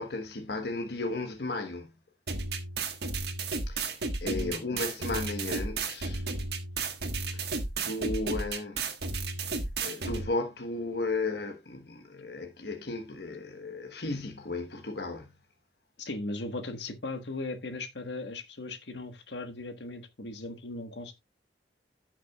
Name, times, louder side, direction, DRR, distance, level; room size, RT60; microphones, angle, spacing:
voice 1, 0.0-1.9 3.7-6.3 7.3-8.8 9.8-15.4, left 2 dB, 65° left, 1.2 m, -35 dB
sound 1, 2.3-10.3, right 3 dB, 65° right, 1.4 m, -33 dB
voice 2, 4.3-4.8 16.0-21.1, left 2 dB, 85° left, 1.4 m, -38 dB
15.0 x 5.9 x 2.3 m
head